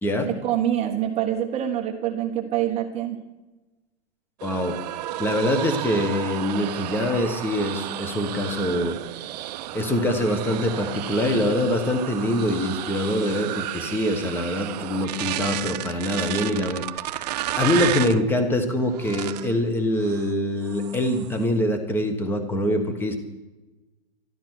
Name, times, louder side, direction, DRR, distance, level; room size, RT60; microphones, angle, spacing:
voice 1, 0.2-3.2, right 11 dB, 20° right, 3 dB, 1.1 m, -25 dB
voice 2, 4.4-4.8 5.2-9.0 9.7-23.1, left 1 dB, 5° left, 7 dB, 1.2 m, -24 dB
sound 1, 4.4-18.2 18.9-19.5 20.0-20.3 20.6-21.4, right 14 dB, 40° right, 0.5 m, -32 dB
13.0 x 12.5 x 6.1 m, 1.1 s
hypercardioid pair, 155°, 34 cm